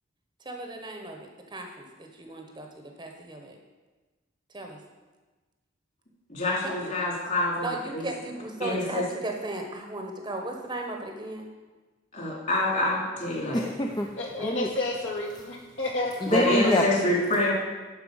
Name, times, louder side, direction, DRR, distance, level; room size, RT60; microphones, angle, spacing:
voice 1, 0.4-3.6 4.5-4.8 6.6-6.9 7.6-11.5 14.4-14.5, right 2 dB, 20° right, 2 dB, 1.0 m, -36 dB
voice 2, 6.3-8.0 8.6-9.0 12.1-13.6 16.3-17.5, left 2 dB, 40° left, -4 dB, 3.5 m, -26 dB
voice 3, 13.4-14.7 16.2-16.8, equal, 20° left, 2 dB, 0.6 m, -26 dB
voice 4, 14.2-16.7, left 1 dB, 70° left, -3 dB, 2.4 m, -31 dB
11.5 x 4.5 x 7.0 m, 1.3 s
head